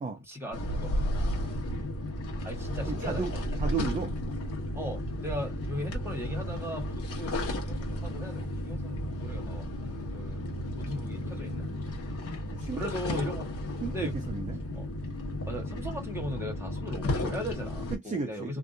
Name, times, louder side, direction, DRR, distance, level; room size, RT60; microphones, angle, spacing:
voice 1, 0.3-1.0 2.4-3.5 4.8-9.7 10.1-10.5 10.8-11.7 12.8-13.5 13.9-14.1 14.7-14.9 15.4-18.6, equal, 10° right, 1.2 m, -38 dB
sound 1, 0.5-18.0, left 1 dB, 50° left, 1.1 m, -33 dB
voice 2, 2.9-4.1 12.5-13.0 13.8-14.6 17.9-18.6, right 5 dB, 25° right, 0.5 m, -34 dB
2.6 x 2.3 x 2.5 m
wide cardioid pair, 155°, 30 cm